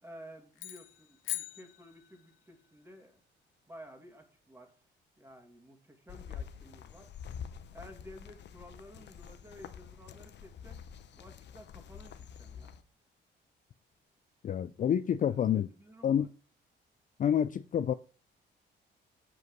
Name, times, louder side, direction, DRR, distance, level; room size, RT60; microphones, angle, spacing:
voice 1, 0.0-3.2 3.7-4.7 5.2-7.1 7.7-10.8 11.2-12.7 15.2-16.3, equal, 10° right, 2.2 m, -53 dB
sound 1, 0.5-2.5, left 14 dB, 85° left, 1.2 m, -41 dB
sound 2, 6.1-12.8, left 8 dB, 60° left, 0.8 m, -47 dB
voice 2, 14.4-15.7 16.0-16.3 17.2-17.9, left 9 dB, 40° left, 0.4 m, -28 dB
7.7 x 5.2 x 6.1 m
cardioid pair, 90°, 20 cm